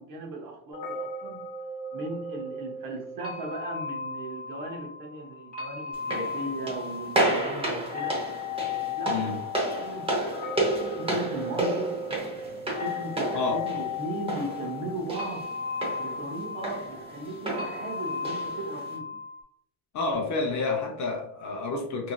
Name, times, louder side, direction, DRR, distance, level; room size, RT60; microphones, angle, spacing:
voice 1, 0.0-1.5 1.9-8.3 8.6-9.3 9.7-10.4 11.0-12.0 12.7-15.5 16.0-19.2, right 2 dB, 45° right, 1 dB, 0.8 m, -37 dB
sound 1, 0.7-19.4, left 4 dB, 15° left, 0.9 m, -36 dB
sound 2, 5.9-19.0, right 1 dB, 10° right, 0.8 m, -32 dB
voice 2, 9.1-9.4 13.3-13.6 19.9-22.1, left 3 dB, 40° left, 1 dB, 0.5 m, -29 dB
3.1 x 2.6 x 2.2 m, 0.69 s
cardioid pair, 140°, 48 cm